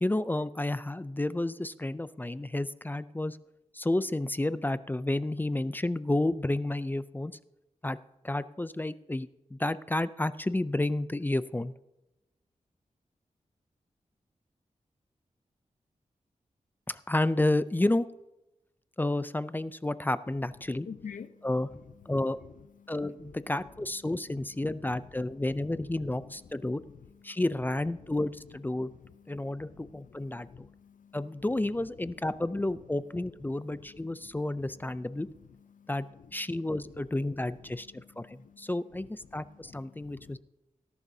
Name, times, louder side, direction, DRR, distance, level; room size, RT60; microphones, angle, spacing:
voice 1, 0.0-3.4 3.7-7.3 7.8-8.0 8.2-11.7 16.9-18.1 19.0-20.9 21.4-21.7 22.1-22.4 22.9-26.8 27.2-28.9 29.3-30.5 31.1-35.3 35.9-36.1 36.3-40.4, left 1 dB, 15° left, 15 dB, 0.4 m, -31 dB
voice 2, 20.8-21.3 22.8-22.9 24.3-24.5 26.2-26.3 27.3-27.4 29.7-31.2 35.7-35.9 37.9-38.7 39.6-40.4, left 6 dB, 85° left, 11 dB, 0.7 m, -48 dB
18.5 x 11.0 x 2.7 m, 0.94 s
wide cardioid pair, 95°, 13 cm